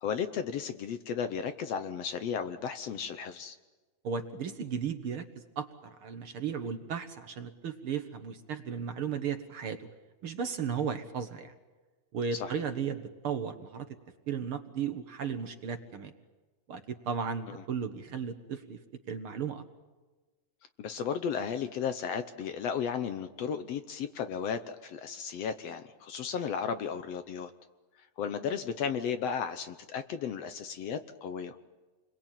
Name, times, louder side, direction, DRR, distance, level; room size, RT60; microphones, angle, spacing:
voice 1, 0.0-3.6 12.3-12.5 17.5-17.6 20.8-27.5 28.0-31.6, left 7 dB, 65° left, 9 dB, 1.8 m, -34 dB
voice 2, 4.0-9.9 10.2-11.5 12.1-13.9 14.3-16.1 16.7-18.8 19.1-19.6, right 6 dB, 55° right, 8 dB, 1.7 m, -35 dB
29.0 x 22.0 x 9.0 m, 1.3 s
omnidirectional pair, 3.5 m